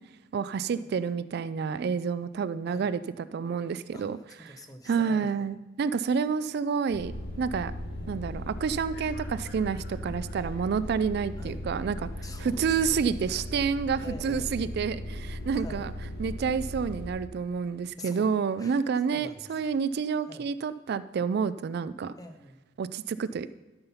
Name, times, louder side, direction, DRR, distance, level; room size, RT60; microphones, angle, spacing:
voice 1, 0.3-4.2 4.9-7.1 7.4-7.7 8.1-12.1 12.4-15.9 16.2-22.1 22.8-23.5, right 6 dB, 55° right, 14 dB, 0.3 m, -29 dB
voice 2, 3.9-5.5 7.9-8.3 11.4-11.7 12.2-13.0 13.2-13.4 14.0-14.6 15.5-15.9 17.9-18.3 18.6-18.8 19.1-19.5 20.2-20.5 22.2-22.6, left 1 dB, 20° left, 6 dB, 0.8 m, -46 dB
sound 1, 6.9-17.1, left 1 dB, 55° left, 1.6 m, -38 dB
12.5 x 5.7 x 5.6 m, 1.2 s
head